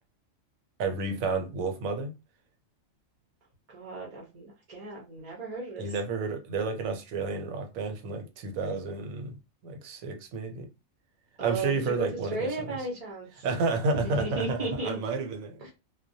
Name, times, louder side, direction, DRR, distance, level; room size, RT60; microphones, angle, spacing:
voice 1, 0.8-2.1 5.8-9.4 9.6-10.7 11.4-12.8 13.4-15.7, right 4 dB, 80° right, 1.0 m, -31 dB
voice 2, 3.7-5.9 11.4-11.7 12.0-13.5 13.9-15.0 15.6-15.7, right 2 dB, 40° right, 0.5 m, -34 dB
2.2 x 2.1 x 2.6 m
omnidirectional pair, 1.4 m